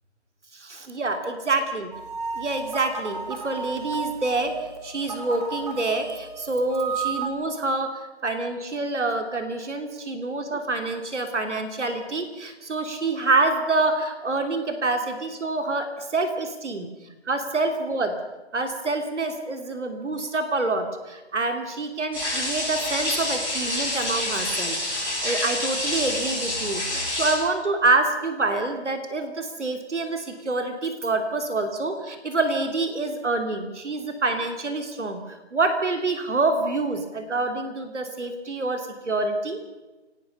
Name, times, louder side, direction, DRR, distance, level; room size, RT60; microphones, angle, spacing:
voice 1, 0.5-1.9 2.4-4.5 4.8-16.9 17.3-18.1 18.5-24.8 25.2-35.2 35.5-39.6, right 3 dB, 80° right, 6 dB, 2.9 m, -26 dB
sound 1, 1.9-7.3, right 5 dB, 35° right, 2.9 m, -33 dB
sound 2, 22.1-27.3, left 1 dB, 5° right, 5.2 m, -27 dB
26.5 x 18.5 x 5.5 m, 1.1 s
hypercardioid pair, 170°, 35 cm